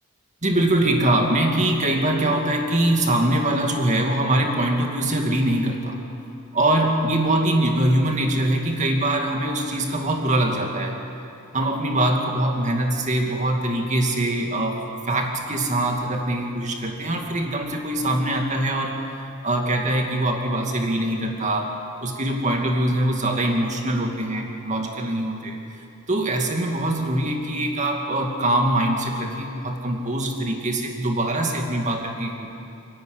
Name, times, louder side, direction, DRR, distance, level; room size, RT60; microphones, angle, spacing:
voice 1, 0.4-6.0 6.5-11.0 11.5-19.0 19.4-21.7 22.0-25.6 26.1-32.5, right 1 dB, 35° right, 2 dB, 2.4 m, -23 dB
29.0 x 10.5 x 9.7 m, 2.7 s
head